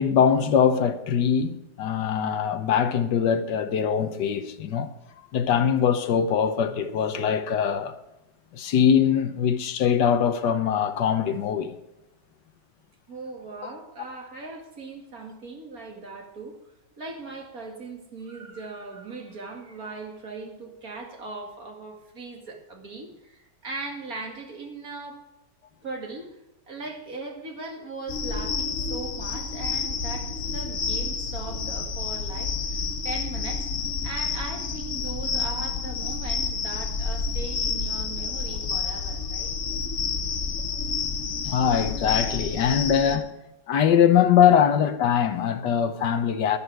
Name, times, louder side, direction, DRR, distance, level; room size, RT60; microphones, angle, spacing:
voice 1, 0.0-4.9 5.3-8.0 8.5-11.7 41.4-43.3 43.7-46.6, left 8 dB, 80° left, 1.6 m, -22 dB
voice 2, 13.1-16.6 17.0-25.2 25.8-26.4 26.7-33.7 34.0-39.5, right 3 dB, 55° right, 2.6 m, -39 dB
sound 1, 28.1-43.2, left 5 dB, 50° left, 1.3 m, -29 dB
12.0 x 11.0 x 4.7 m
omnidirectional pair, 1.9 m